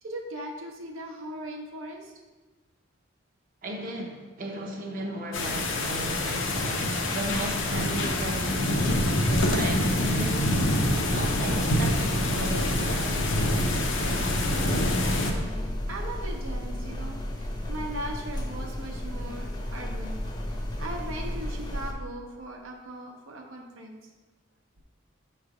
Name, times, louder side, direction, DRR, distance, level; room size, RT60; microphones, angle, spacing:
voice 1, 0.0-2.1 14.0-20.2 20.8-24.0, right 1 dB, 90° right, 1 dB, 0.9 m, -39 dB
voice 2, 3.6-13.3, right 1 dB, 45° right, 0 dB, 0.7 m, -36 dB
sound 1, 5.3-15.3, left 1 dB, 70° left, 0.7 m, -26 dB
sound 2, 9.9-21.9, left 1 dB, 20° left, 0.5 m, -33 dB
6.3 x 3.2 x 4.9 m, 1.2 s
head